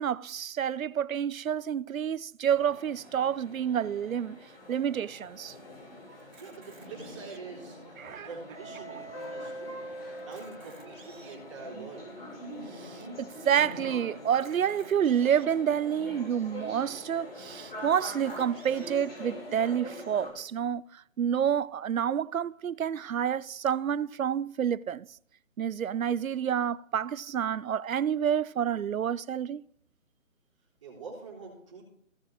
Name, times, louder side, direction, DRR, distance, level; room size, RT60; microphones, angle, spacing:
voice 1, 0.0-4.4 4.7-5.5 8.0-8.3 12.8-25.1 25.6-29.6, right 8 dB, 85° right, 0.6 m, -29 dB
sound 1, 2.4-20.3, equal, 45° left, 4.0 m, -44 dB
Camera, 6.2-7.6 8.2-8.3 8.6-8.7 9.2-9.3 10.1-11.5 12.1-12.2 14.3-15.5 16.2-16.3 16.6-16.7 17.8-19.0, right 4 dB, 70° right, 2.7 m, -55 dB
voice 2, 6.4-7.8 8.2-9.9 10.2-12.2 30.8-31.8, right 4 dB, 25° right, 3.6 m, -45 dB
17.0 x 6.4 x 2.8 m
figure-of-eight pair, 175°, 40 cm